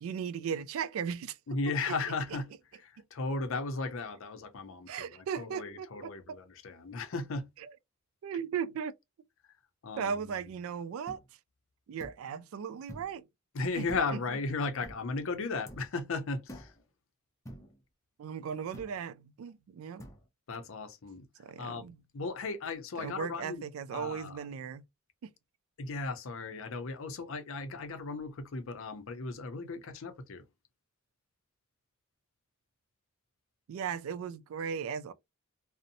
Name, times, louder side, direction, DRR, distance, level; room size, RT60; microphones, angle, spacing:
voice 1, 0.0-1.4 1.9-2.0 4.9-6.4 7.6-7.7 8.2-9.0 10.0-11.2 11.9-13.2 13.8-13.9 14.1-14.2 18.2-20.0 21.4-22.0 23.0-24.8 25.2-25.3 33.7-35.1, right 7 dB, 70° right, 0.3 m, -37 dB
voice 2, 1.5-2.5 2.8-7.4 9.8-10.1 13.5-16.7 20.5-21.3 21.6-21.9 22.1-23.6 23.9-24.4 25.8-30.4, left 3 dB, 70° left, 0.5 m, -36 dB
sound 1, 11.1-11.2 12.0-12.2 12.9-13.2 13.9-14.3 14.8-15.1 15.7-16.0 16.5-16.8 17.5-17.8 18.7-19.0 20.0-20.2, equal, 15° left, 0.5 m, -47 dB
2.6 x 2.0 x 2.5 m
head